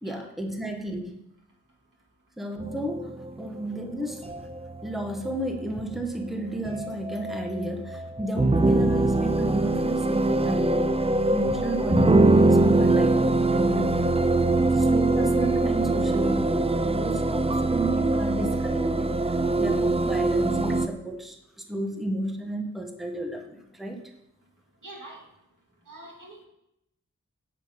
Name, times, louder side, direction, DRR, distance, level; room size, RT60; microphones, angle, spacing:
voice 1, 0.0-1.2 2.4-3.1 3.4-4.5 4.8-11.0 11.3-14.4 14.7-24.0, right 1 dB, ahead, 3 dB, 1.1 m, -32 dB
sound 1, 2.6-20.9, right 2 dB, 20° right, 0.4 m, -23 dB
voice 2, 24.8-25.2 25.9-26.5, right 2 dB, 80° right, -1 dB, 2.1 m, -44 dB
8.9 x 5.1 x 5.1 m, 0.81 s
wide cardioid pair, 45°, 31 cm